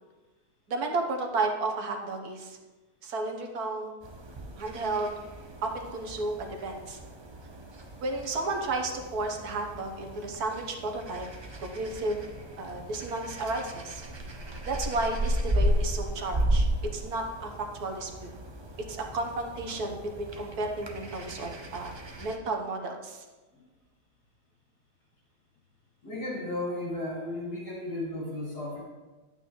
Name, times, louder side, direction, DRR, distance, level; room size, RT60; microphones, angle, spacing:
voice 1, 0.7-2.6 3.0-3.9 4.6-5.1 5.6-7.0 8.0-11.3 11.6-12.2 12.6-14.0 14.7-16.7 16.9-18.3 18.9-21.9 22.2-23.2, right 2 dB, 70° right, 4 dB, 1.6 m, -32 dB
sound 1, 4.0-22.4, right 1 dB, 35° right, 0.4 m, -34 dB
voice 2, 26.0-28.8, left 1 dB, 80° left, -5 dB, 3.0 m, -34 dB
12.0 x 8.8 x 3.1 m, 1.2 s
omnidirectional pair, 1.7 m